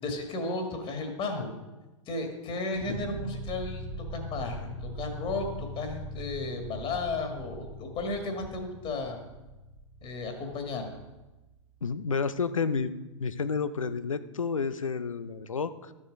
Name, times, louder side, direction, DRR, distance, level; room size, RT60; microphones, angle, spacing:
voice 1, 0.0-1.5 2.1-9.2 10.0-10.9, left 3 dB, 35° left, 4 dB, 1.9 m, -34 dB
sound 1, 2.7-11.8, right 1 dB, 40° right, 2.4 m, -41 dB
voice 2, 11.8-12.9 13.2-15.9, left 5 dB, 90° left, 13 dB, 0.6 m, -30 dB
12.5 x 7.3 x 5.3 m, 1.1 s
figure-of-eight pair, 100°, 16 cm